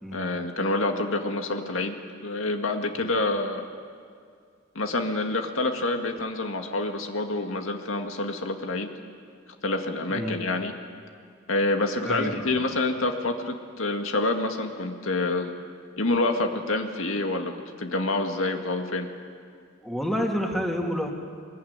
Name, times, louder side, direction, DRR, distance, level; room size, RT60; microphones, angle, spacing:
voice 1, 0.1-2.0 2.2-3.6 4.8-8.9 9.6-10.7 11.5-15.5 16.0-19.1, left 2 dB, 85° left, 4 dB, 2.0 m, -27 dB
voice 2, 10.1-10.4 12.1-12.6 19.8-21.1, equal, ahead, 0 dB, 2.4 m, -28 dB
23.0 x 22.0 x 9.6 m, 2.2 s
head